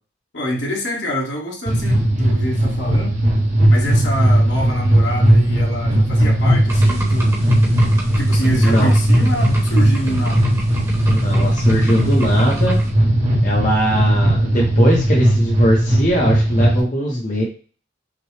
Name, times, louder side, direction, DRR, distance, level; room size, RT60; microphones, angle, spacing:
voice 1, 0.3-3.2 3.7-7.6 8.1-10.5, equal, 70° left, -2 dB, 1.5 m, -26 dB
sound 1, 1.7-16.8, right 1 dB, 35° right, 1.0 m, -17 dB
sound 2, 6.7-12.9, right 1 dB, 15° right, 1.1 m, -31 dB
voice 2, 8.6-8.9 11.1-12.8 13.4-17.4, equal, 40° left, -3 dB, 0.9 m, -20 dB
5.8 x 2.3 x 3.2 m, 0.39 s
head